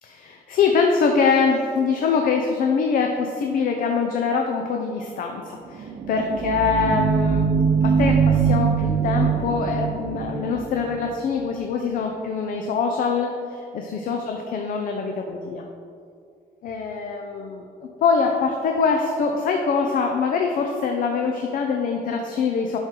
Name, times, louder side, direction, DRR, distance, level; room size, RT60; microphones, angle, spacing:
voice 1, 0.0-7.5 7.8-15.7 16.6-22.8, left 5 dB, 60° left, 3 dB, 0.6 m, -24 dB
sound 1, 5.7-11.2, right 6 dB, 45° right, 0.5 m, -22 dB
11.0 x 4.4 x 3.8 m, 2.4 s
cardioid pair, 180°, 16 cm